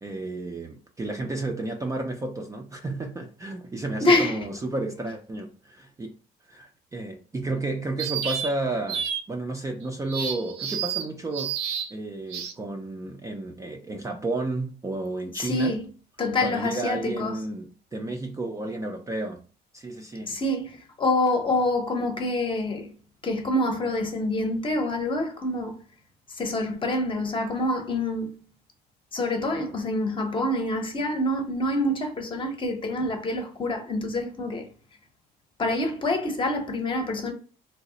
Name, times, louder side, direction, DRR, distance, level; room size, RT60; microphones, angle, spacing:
voice 1, 0.0-6.1 6.5-11.6 11.9-15.8 16.4-19.4 19.7-20.4, right 2 dB, 20° right, 0.4 m, -32 dB
voice 2, 4.0-4.5 15.4-15.9 16.2-17.4 20.3-22.9 23.2-25.7 26.3-28.4 29.1-34.7 35.6-37.3, left 1 dB, 30° left, 0.8 m, -26 dB
sound 1, 8.0-8.5 8.9-9.2 10.1-11.1 11.3-11.9 12.3-12.5, right 8 dB, 90° right, 0.5 m, -30 dB
3.0 x 2.0 x 3.7 m
cardioid pair, 110°, 17 cm